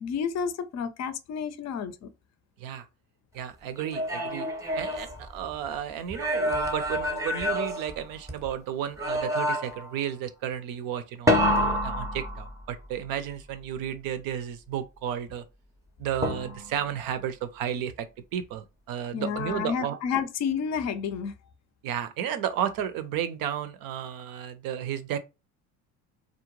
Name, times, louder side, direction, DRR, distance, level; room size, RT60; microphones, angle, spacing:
voice 1, 0.0-2.1 19.1-21.3, left 7 dB, 40° left, 0.5 m, -30 dB
voice 2, 3.3-4.5 4.8-15.4 16.0-18.1 18.3-20.0 21.8-25.2, right 9 dB, 60° right, 0.5 m, -33 dB
sound 1, 3.8-5.7 6.1-8.5 9.0-9.9 11.3-12.9 16.2-16.9, equal, 10° right, 0.7 m, -28 dB
2.4 x 2.1 x 3.0 m
hypercardioid pair, 65°, 40 cm